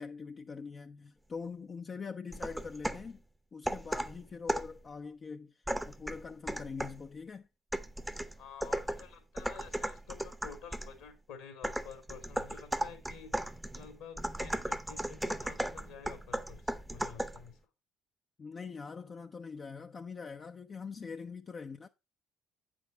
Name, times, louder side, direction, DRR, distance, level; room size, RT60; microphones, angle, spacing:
voice 1, 0.0-3.2 3.5-7.5 18.4-21.9, left 5 dB, 40° left, 0.6 m, -43 dB
sound 1, 2.3-3.1 3.7-4.8 5.7-7.1 7.7-11.0 11.6-17.5, right 1 dB, 5° right, 0.8 m, -36 dB
voice 2, 8.4-13.3 13.7-17.6 21.0-21.1, left 7 dB, 70° left, 2.5 m, -50 dB
9.0 x 6.3 x 4.4 m
figure-of-eight pair, 50°, 0 cm